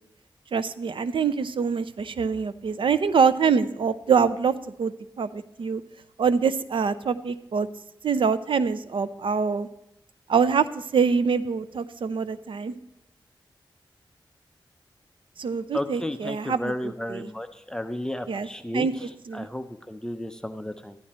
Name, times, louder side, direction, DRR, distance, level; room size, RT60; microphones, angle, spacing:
voice 1, 0.5-4.5 4.8-5.8 6.2-7.7 8.0-9.7 10.3-12.7 15.4-17.3 18.3-18.5 18.7-18.9 19.3-19.5, right 6 dB, 85° right, 14 dB, 0.6 m, -25 dB
voice 2, 15.7-21.0, left 1 dB, 10° left, 8 dB, 0.8 m, -33 dB
13.5 x 11.0 x 4.3 m, 0.86 s
wide cardioid pair, 85°, 8 cm